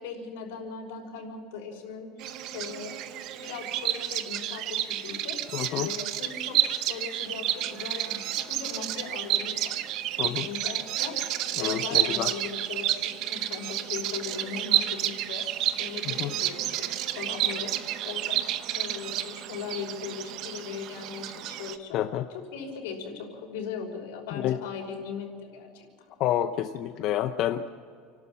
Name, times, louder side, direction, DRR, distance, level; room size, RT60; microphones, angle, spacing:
voice 1, 0.0-2.1 2.5-3.0 3.4-5.4 5.7-6.6 6.8-9.8 10.2-17.7 18.0-18.4 18.7-22.0 22.5-25.9, left 6 dB, 85° left, 1 dB, 5.8 m, -38 dB
Bird vocalization bird call bird song, 2.2-21.8, right 12 dB, 45° right, 0.9 m, -30 dB
voice 2, 5.5-5.9 10.2-10.5 11.6-12.3 16.0-16.3 21.9-22.3 24.3-24.6 26.2-27.7, left 12 dB, 40° left, 8 dB, 0.6 m, -28 dB
29.5 x 12.5 x 7.5 m, 2.2 s
cardioid pair, 175°, 0 cm